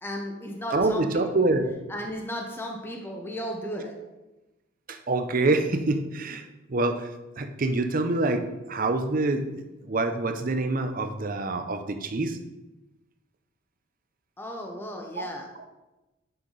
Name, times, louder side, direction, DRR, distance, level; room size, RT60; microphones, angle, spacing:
voice 1, 0.0-1.5 1.9-3.9 14.4-15.5, equal, 10° left, 1 dB, 0.9 m, -35 dB
voice 2, 0.7-1.7 4.9-12.4 15.2-15.3 15.6-15.7, right 2 dB, 40° right, 7 dB, 0.6 m, -26 dB
9.2 x 5.8 x 3.9 m, 1.0 s
head